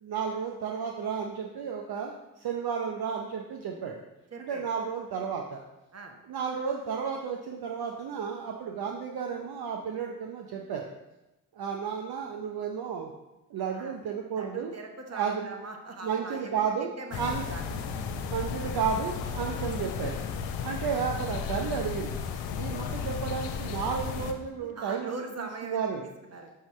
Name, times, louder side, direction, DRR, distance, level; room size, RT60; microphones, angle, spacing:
voice 1, 0.0-4.0 4.4-5.6 6.3-10.9 11.5-13.1 13.5-14.7 15.1-15.5 16.0-17.4 18.3-20.2 20.6-26.1, right 6 dB, 55° right, 1 dB, 0.7 m, -33 dB
voice 2, 4.3-4.7 5.9-6.1 13.7-13.9 14.4-17.7 18.6-18.7 20.5-20.7 24.6-26.5, right 3 dB, 35° right, 3 dB, 1.2 m, -41 dB
sound 1, 17.1-24.3, left 6 dB, 80° left, 0.7 m, -34 dB
6.1 x 5.6 x 3.2 m, 0.99 s
supercardioid pair, 45°, 44 cm